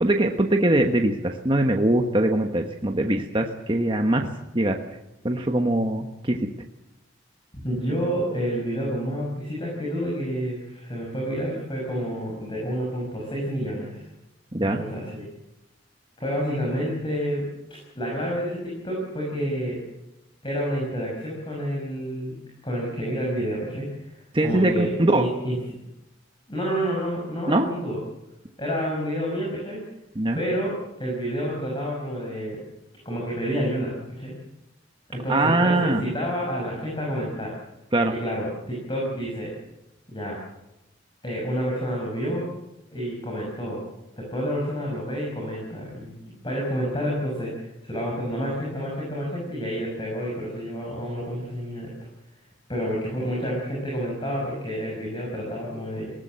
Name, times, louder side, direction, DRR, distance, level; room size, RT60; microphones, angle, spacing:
voice 1, 0.0-4.8 5.2-6.5 14.5-14.8 24.3-25.3 27.5-27.7 30.1-30.4 35.3-36.0 37.9-38.1, right 1 dB, 25° right, 3 dB, 1.2 m, -22 dB
voice 2, 7.5-14.0 14.6-15.3 16.2-17.4 17.9-19.8 20.4-22.3 22.6-25.6 26.5-28.0 28.6-29.8 30.3-32.6 33.0-34.3 35.1-37.5 38.1-39.5 40.1-40.4 41.2-42.5 42.9-43.8 44.2-46.2 46.4-51.9 52.7-56.1, equal, 25° left, -2 dB, 6.0 m, -29 dB
21.0 x 18.0 x 7.6 m, 0.91 s
head